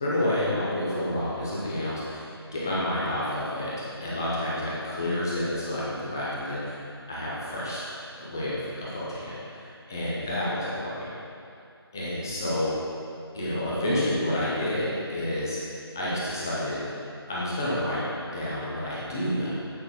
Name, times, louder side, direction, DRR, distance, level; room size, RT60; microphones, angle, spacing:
voice 1, 0.0-6.8 7.1-7.8 8.2-11.1 11.9-12.7 13.3-15.6 15.9-16.9 17.3-18.1 18.3-19.5, left 1 dB, 5° left, -8 dB, 0.5 m, -29 dB
8.7 x 5.2 x 4.1 m, 2.5 s
figure-of-eight pair, 160°, 14 cm